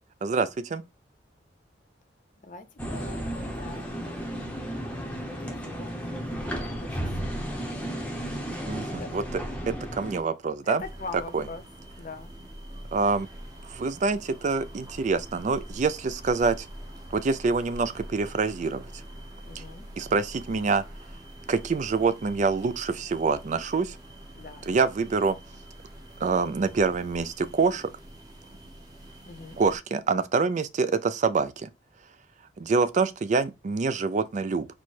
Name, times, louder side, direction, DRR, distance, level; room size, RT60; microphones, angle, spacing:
voice 1, 0.2-0.8 8.7-9.2 9.7-10.8 11.3-11.4 12.9-13.3 13.6-16.7 17.1-18.9 19.6-19.7 20.0-20.8 21.5-24.0 24.7-25.4 26.2-27.9 29.6-31.7 32.6-34.7, right 4 dB, 45° right, 0.4 m, -26 dB
voice 2, 2.4-4.0 4.9-7.5 9.0-9.1 10.6-11.6 11.9-12.3 19.5-19.9 24.3-24.7 29.2-29.6, left 4 dB, 45° left, 0.6 m, -42 dB
sound 1, 2.8-10.2, equal, 10° left, 0.7 m, -33 dB
sound 2, 10.8-29.8, equal, 20° right, 0.8 m, -45 dB
4.3 x 2.2 x 4.6 m
head